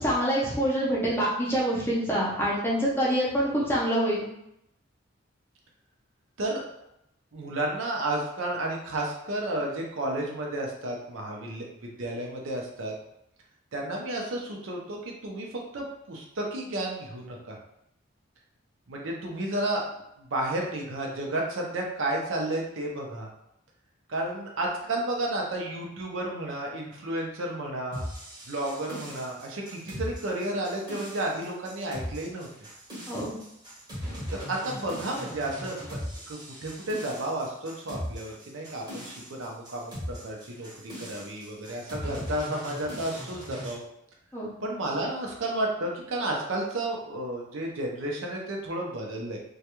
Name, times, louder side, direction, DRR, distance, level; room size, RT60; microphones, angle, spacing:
voice 1, 0.0-4.3 33.1-33.3 44.3-44.5, equal, 10° left, -6 dB, 0.5 m, -26 dB
voice 2, 7.3-12.9 13.7-17.6 18.9-19.9 20.2-23.3 24.1-28.1 28.5-32.5 34.3-36.0 36.3-40.7 41.0-43.8 44.6-49.4, right 1 dB, 75° right, -1 dB, 0.6 m, -32 dB
sound 1, 27.9-43.8, equal, 20° right, 0.8 m, -39 dB
2.3 x 2.2 x 2.9 m, 0.80 s
head